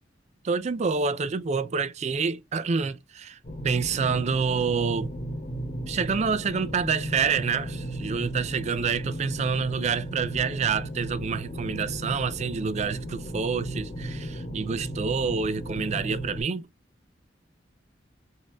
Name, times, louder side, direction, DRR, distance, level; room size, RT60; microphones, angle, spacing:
voice 1, 0.4-3.4 3.6-5.1 5.9-16.7, right 5 dB, 40° right, 0.4 m, -27 dB
sound 1, 3.4-16.4, right 1 dB, 40° left, 1.2 m, -35 dB
4.2 x 3.6 x 2.3 m
head